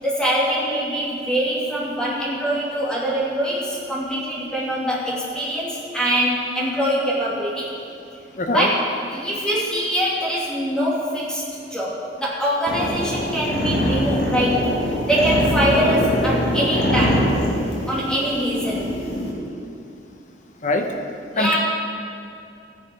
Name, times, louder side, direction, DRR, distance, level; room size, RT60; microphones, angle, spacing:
voice 1, 0.0-7.7 8.5-11.4 11.7-14.7 15.0-17.3 17.9-18.9 21.3-21.6, equal, 5° left, -7 dB, 2.7 m, -23 dB
voice 2, 8.4-8.7 20.6-20.9 21.4-21.6, left 2 dB, 45° left, 4 dB, 0.9 m, -22 dB
sound 1, 12.7-19.3, equal, 70° left, 2.7 m, -23 dB
14.0 x 10.0 x 4.7 m, 2.6 s
head